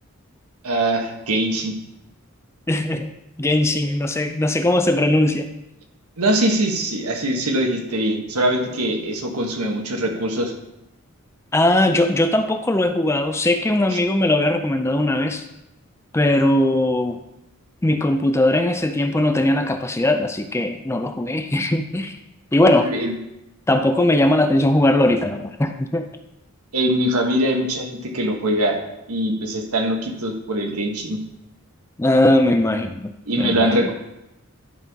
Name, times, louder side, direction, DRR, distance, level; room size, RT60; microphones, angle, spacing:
voice 1, 0.6-1.7 6.2-10.5 13.9-14.0 22.7-23.2 26.7-28.8 29.1-31.2 33.3-33.9, right 1 dB, 85° right, 2 dB, 1.3 m, -22 dB
voice 2, 2.7-3.1 3.4-5.5 11.5-15.4 16.1-17.2 17.8-22.2 22.5-22.9 23.7-26.1 32.0-33.1 33.4-33.8, left 1 dB, 10° left, 7 dB, 0.4 m, -19 dB
10.5 x 5.5 x 3.6 m, 0.89 s
head